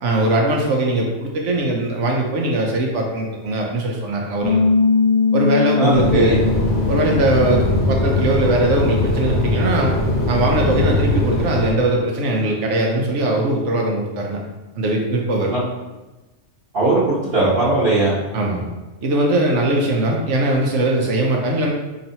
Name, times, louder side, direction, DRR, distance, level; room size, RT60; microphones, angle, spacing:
voice 1, 0.0-4.6 5.3-6.4 6.9-10.0 10.3-14.4 14.8-15.5 18.3-18.7 19.0-21.7, right 1 dB, 85° right, 0 dB, 1.0 m, -20 dB
Bass guitar, 4.4-10.7, left 5 dB, 10° left, 0.7 m, -22 dB
voice 2, 5.8-6.4 15.5-15.6 16.7-18.1, right 2 dB, 55° right, -11 dB, 1.3 m, -18 dB
sound 1, 5.9-11.7, left 1 dB, 65° left, 1.1 m, -20 dB
4.2 x 3.0 x 2.7 m, 1.1 s
omnidirectional pair, 1.2 m